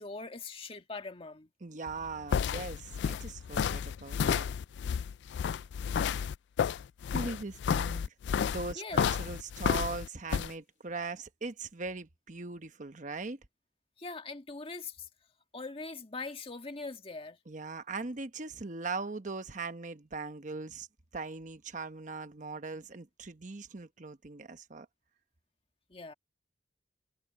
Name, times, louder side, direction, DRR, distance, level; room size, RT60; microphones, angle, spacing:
voice 1, 0.0-1.5 8.7-9.0 14.0-15.1 15.5-17.4 25.9-26.1, left 3 dB, 35° left, 1.8 m, -42 dB
voice 2, 1.6-4.5 7.1-8.1 8.4-13.4 17.5-20.9 21.1-24.9, right 3 dB, 45° right, 1.1 m, -40 dB
sound 1, 1.9-10.5, left 7 dB, 80° left, 0.3 m, -31 dB
head